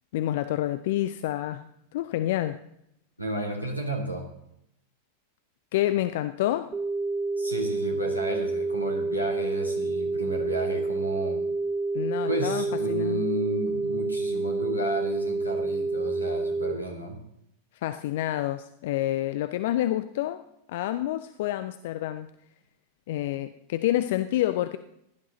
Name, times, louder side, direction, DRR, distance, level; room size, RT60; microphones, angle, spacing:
voice 1, 0.1-2.6 5.7-6.7 11.9-13.3 17.8-20.4 20.7-22.3 23.1-24.8, left 14 dB, 55° left, 11 dB, 0.5 m, -28 dB
voice 2, 3.2-4.3 7.4-11.4 12.3-17.2, right 1 dB, 90° left, 0 dB, 2.9 m, -32 dB
sound 1, 6.7-16.7, right 3 dB, 20° right, 0.6 m, -28 dB
16.5 x 11.0 x 3.9 m, 0.77 s
figure-of-eight pair, 90°, 0 cm